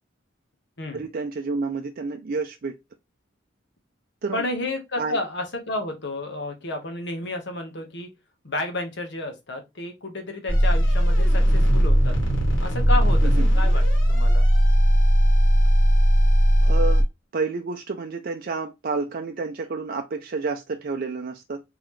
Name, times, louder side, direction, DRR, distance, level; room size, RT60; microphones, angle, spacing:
voice 1, 0.9-2.8 4.2-4.4 5.0-5.2 13.2-13.5 16.6-17.0 17.3-21.6, right 4 dB, 50° right, 0.5 m, -29 dB
voice 2, 4.3-8.1 8.4-12.1 12.6-13.8 14.1-14.4, left 2 dB, 60° left, 1.3 m, -31 dB
sound 1, 10.5-17.0, equal, 85° left, 2.3 m, -18 dB
3.9 x 3.8 x 3.1 m
head